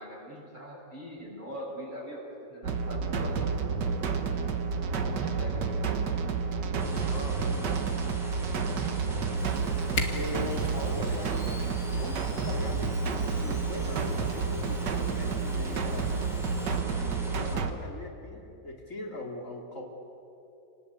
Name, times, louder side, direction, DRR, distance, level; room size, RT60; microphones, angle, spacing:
voice 1, 0.0-2.2 2.5-3.6 4.8-5.9, equal, 25° right, -6 dB, 6.1 m, -42 dB
sound 1, 2.6-17.7, right 5 dB, 70° right, 2.0 m, -30 dB
sound 2, 6.8-17.6, equal, ahead, 3.6 m, -44 dB
voice 2, 7.1-7.9 9.8-11.5 12.0-16.7 17.1-19.8, left 1 dB, 45° left, 0 dB, 3.8 m, -41 dB
Camera, 9.4-16.8, left 4 dB, 65° left, 2.5 m, -42 dB
29.0 x 19.5 x 8.4 m, 2.9 s
omnidirectional pair, 1.9 m